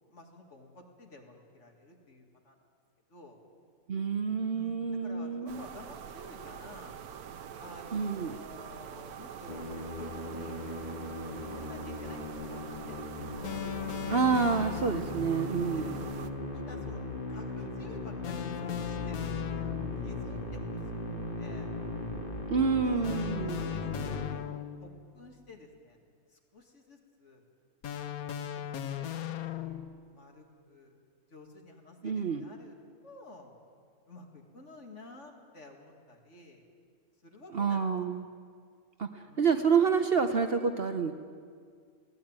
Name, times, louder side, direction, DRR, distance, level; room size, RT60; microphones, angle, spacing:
voice 1, 0.1-2.6 3.1-3.4 4.5-7.0 7.6-10.6 11.4-13.7 15.7-15.9 16.5-17.0 17.3-21.7 22.7-26.0 26.3-27.4 28.0-31.0 31.3-32.8 33.0-33.5 34.1-36.6 37.2-37.8 38.1-38.2 39.2-39.5, left 2 dB, 55° left, 2 dB, 2.6 m, -52 dB
voice 2, 3.9-5.6 7.9-8.4 14.1-15.9 22.5-23.6 32.0-32.4 37.5-38.2 39.0-41.1, right 5 dB, 50° right, 8 dB, 0.9 m, -28 dB
sound 1, 5.5-16.3, right 8 dB, 90° right, 1.4 m, -45 dB
Musical instrument, 9.5-24.3, left 2 dB, 35° left, 2.3 m, -38 dB
sound 2, 13.4-15.3 18.2-20.1 23.0-25.0 27.8-30.0, left 11 dB, 80° left, 1.3 m, -38 dB
20.5 x 15.5 x 8.9 m, 2.1 s
omnidirectional pair, 1.5 m